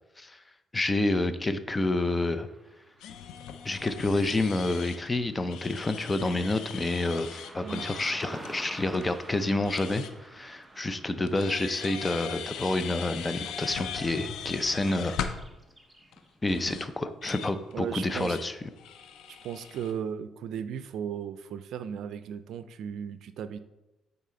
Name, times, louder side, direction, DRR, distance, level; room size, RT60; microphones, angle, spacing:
voice 1, 0.7-2.5 3.6-10.0 10.3-15.2 16.4-18.5, left 2 dB, 20° left, 11 dB, 0.6 m, -28 dB
Car passing by / Traffic noise roadway noise, 2.2-16.4, right 1 dB, 10° right, 0.9 m, -51 dB
sound 1, 3.0-10.1 11.3-15.5 16.1-16.2 16.5-16.9 17.2-19.9, left 8 dB, 85° left, 0.5 m, -40 dB
voice 2, 7.6-7.9 17.7-18.4 19.3-23.6, right 8 dB, 75° right, 12 dB, 0.4 m, -36 dB
9.0 x 4.1 x 3.8 m, 0.99 s
cardioid pair, 90°, 0 cm